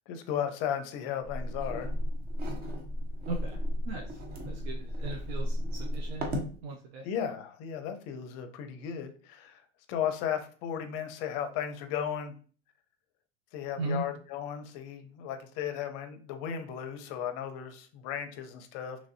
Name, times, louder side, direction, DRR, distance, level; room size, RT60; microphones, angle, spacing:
voice 1, 0.1-1.9 7.0-9.6 9.9-12.3 13.5-19.0, left 9 dB, 50° left, 0.5 m, -35 dB
sound 1, 1.2-6.5, equal, 30° right, 0.6 m, -34 dB
voice 2, 3.3-3.6 3.9-7.1 13.8-14.0, right 3 dB, 70° right, 0.6 m, -38 dB
3.0 x 2.5 x 2.6 m
supercardioid pair, 135°, 33 cm